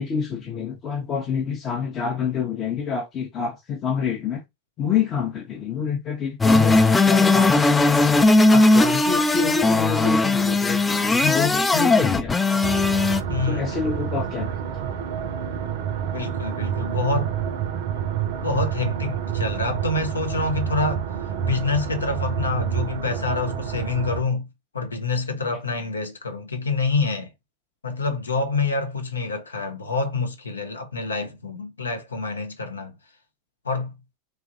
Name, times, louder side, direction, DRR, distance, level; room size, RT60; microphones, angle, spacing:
voice 1, 0.0-4.4 4.8-7.9 8.5-12.8 13.5-14.6, left 6 dB, 35° left, 0.7 m, -27 dB
sound 1, 6.4-13.2, left 2 dB, 15° left, 0.3 m, -18 dB
sound 2, 12.6-24.2, right 8 dB, 60° right, 0.5 m, -28 dB
voice 2, 13.3-13.6 16.1-17.3 18.4-21.0 21.4-24.5 24.7-27.3 27.8-33.0 33.6-33.9, left 3 dB, 80° left, 0.6 m, -26 dB
3.2 x 2.4 x 2.4 m
figure-of-eight pair, 85°, 0 cm